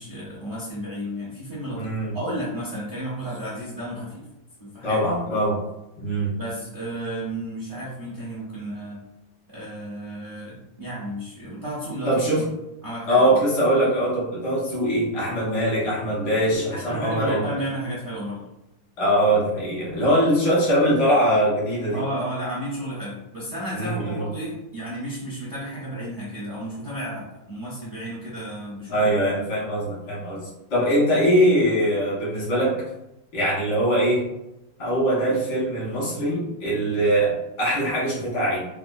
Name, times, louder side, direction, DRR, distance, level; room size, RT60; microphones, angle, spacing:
voice 1, 0.0-1.9 2.1-4.2 4.6-5.0 6.4-9.0 9.5-12.2 12.8-13.2 16.7-18.4 21.9-29.1, right 1 dB, 45° right, -8 dB, 0.7 m, -32 dB
voice 2, 1.7-2.1 4.8-5.6 6.0-6.3 12.0-12.4 13.1-17.5 19.0-22.0 23.7-24.2 28.9-30.4 30.7-32.8 33.3-34.2 34.8-38.7, equal, 85° left, -7 dB, 2.3 m, -22 dB
4.7 x 2.0 x 2.5 m, 0.90 s
omnidirectional pair, 2.0 m